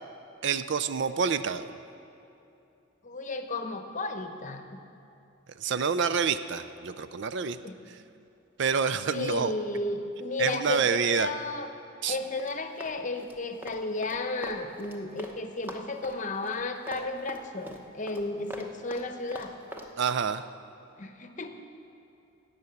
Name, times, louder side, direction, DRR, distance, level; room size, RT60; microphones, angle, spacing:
voice 1, 0.4-1.7 5.6-7.6 8.6-9.5 10.4-11.3 12.0-12.2 20.0-20.4, right 6 dB, 60° right, 11 dB, 0.4 m, -27 dB
voice 2, 3.0-4.8 7.6-7.8 9.1-11.7 12.1-19.5 21.0-21.5, left 2 dB, 40° left, 7 dB, 0.8 m, -33 dB
Run, 12.1-15.4 15.6-19.9, equal, 10° right, 0.9 m, -43 dB
12.5 x 8.3 x 8.0 m, 2.8 s
head